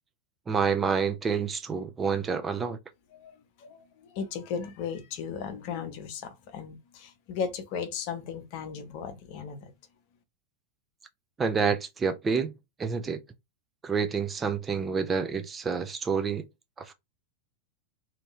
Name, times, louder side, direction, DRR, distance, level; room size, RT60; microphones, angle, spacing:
voice 1, 0.5-2.8 11.4-12.5 12.8-13.2 13.8-16.4 16.8-16.9, right 5 dB, 20° right, 0.4 m, -28 dB
voice 2, 3.1-9.7, left 6 dB, 45° left, 0.8 m, -36 dB
2.8 x 2.6 x 2.9 m
figure-of-eight pair, 90°, 0 cm